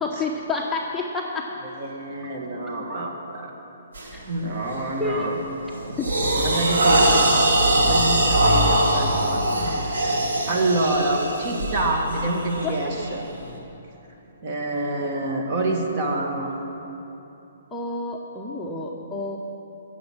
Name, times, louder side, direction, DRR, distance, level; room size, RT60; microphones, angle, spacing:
voice 1, 0.0-1.5 4.1-4.3 5.0-5.3 6.0-6.1 12.6-12.8 17.7-19.4, left 3 dB, 5° left, -3 dB, 0.8 m, -29 dB
voice 2, 1.6-3.5 4.3-5.4 6.3-13.2 14.4-16.5, right 2 dB, 40° right, 1 dB, 1.8 m, -27 dB
sound 1, 3.9-4.2 4.7-5.0 5.4-13.5, right 1 dB, 75° right, 2.0 m, -22 dB
17.5 x 7.2 x 6.1 m, 2.9 s
hypercardioid pair, 150°, 0 cm